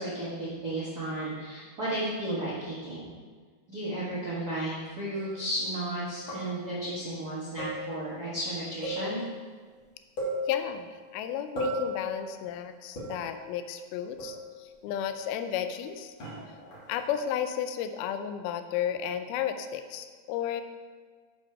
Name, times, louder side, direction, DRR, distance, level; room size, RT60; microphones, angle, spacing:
voice 1, 0.0-3.0 3.7-9.2, right 1 dB, 60° right, -8 dB, 0.9 m, -33 dB
sound 1, 5.1-5.4 6.3-6.8 7.6-8.2 8.8-9.5 9.8-9.9 10.2-11.0 11.6-12.2 13.0-13.5 14.2-14.7 16.2-17.1, equal, 40° left, 2.3 m, -36 dB
voice 2, 10.5-16.1 16.9-20.6, left 9 dB, 90° left, 9 dB, 2.5 m, -33 dB
7.5 x 5.0 x 5.7 m, 1.6 s
omnidirectional pair, 4.3 m